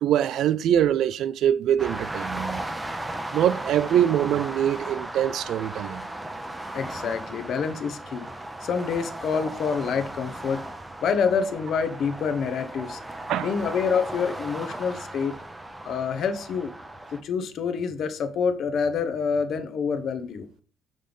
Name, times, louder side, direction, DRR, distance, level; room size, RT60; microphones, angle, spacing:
voice 1, 0.0-2.7 3.3-6.1 13.3-13.5, right 10 dB, 60° right, 0.3 m, -23 dB
sound 1, 1.8-17.2, right 1 dB, 10° right, 0.6 m, -36 dB
voice 2, 6.7-8.3 8.6-10.6 11.0-13.0 13.4-15.3 15.9-16.7 17.1-20.5, left 6 dB, 50° left, 0.8 m, -27 dB
6.4 x 3.8 x 5.2 m
cardioid pair, 150°, 0 cm